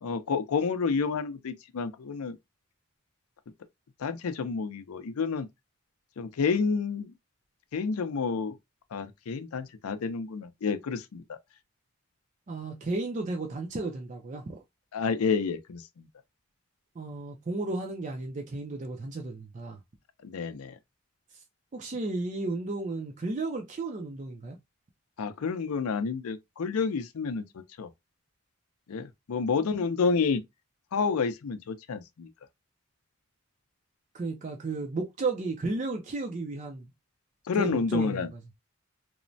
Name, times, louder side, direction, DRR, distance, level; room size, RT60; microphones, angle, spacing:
voice 1, 0.0-2.4 4.0-5.5 6.2-7.1 7.7-8.6 8.9-11.4 14.9-16.1 20.2-20.8 25.2-27.9 28.9-30.4 30.9-32.3 37.5-38.3, left 5 dB, 85° left, 0.5 m, -29 dB
voice 2, 12.5-14.6 17.0-19.8 21.7-24.6 29.5-29.6 34.1-36.9 37.6-38.2, right 3 dB, 35° right, 0.4 m, -33 dB
3.0 x 2.1 x 2.6 m
head